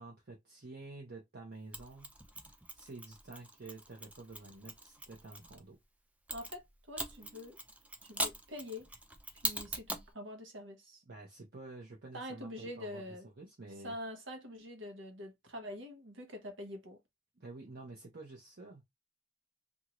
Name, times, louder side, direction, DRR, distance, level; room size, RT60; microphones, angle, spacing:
voice 1, 0.0-2.1 2.7-5.8 11.1-13.9 17.4-18.8, right 3 dB, 55° right, 0.8 m, -50 dB
Mechanisms, 1.7-5.6 6.3-10.1, right 2 dB, 10° right, 0.4 m, -42 dB
voice 2, 6.3-7.6 8.0-8.9 9.4-11.0 12.1-13.3 13.8-17.0, left 1 dB, 85° right, 1.0 m, -45 dB
2.6 x 2.4 x 3.0 m
head